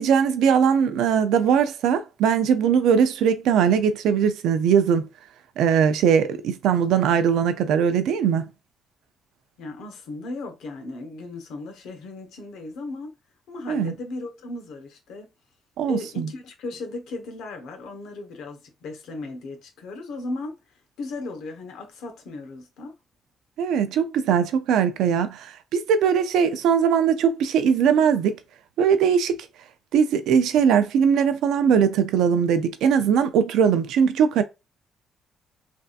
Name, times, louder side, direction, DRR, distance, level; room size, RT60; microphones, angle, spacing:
voice 1, 0.0-5.1 5.6-8.5 13.7-13.9 15.8-16.3 23.6-28.4 28.8-29.4 29.9-34.4, right 7 dB, 85° right, 0.4 m, -20 dB
voice 2, 9.6-13.1 13.5-15.3 15.8-20.6 21.0-22.9, left 2 dB, 85° left, 1.0 m, -36 dB
3.4 x 2.7 x 2.4 m
cardioid pair, 90°, 0 cm